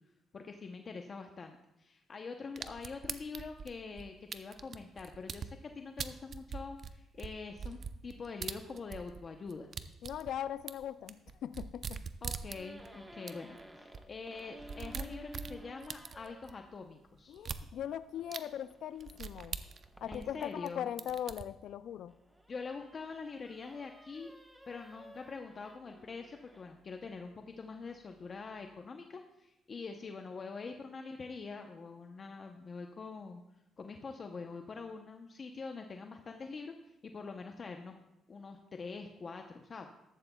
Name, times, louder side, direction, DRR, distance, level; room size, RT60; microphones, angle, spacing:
voice 1, 0.3-9.7 12.2-17.4 20.1-20.9 21.5-21.6 22.5-24.3 24.7-33.4 33.8-38.0 38.3-39.9, left 4 dB, 40° left, 4 dB, 0.7 m, -45 dB
sound 1, 2.6-5.5 6.0-9.2 9.5-12.9 13.3-13.4 13.6-13.7 13.9-14.0 14.4-16.5 17.4-17.6 18.3-18.4 19.0-20.7 21.0-21.4, right 6 dB, 50° right, 0.5 m, -42 dB
voice 2, 10.0-12.0 17.3-19.6 20.0-22.1, left 10 dB, 75° left, 14 dB, 0.3 m, -40 dB
sound 2, 12.5-16.7 18.1-21.3 21.9-26.9, right 1 dB, 5° right, 1.1 m, -54 dB
14.0 x 12.0 x 2.3 m, 0.88 s
cardioid pair, 90°, 0 cm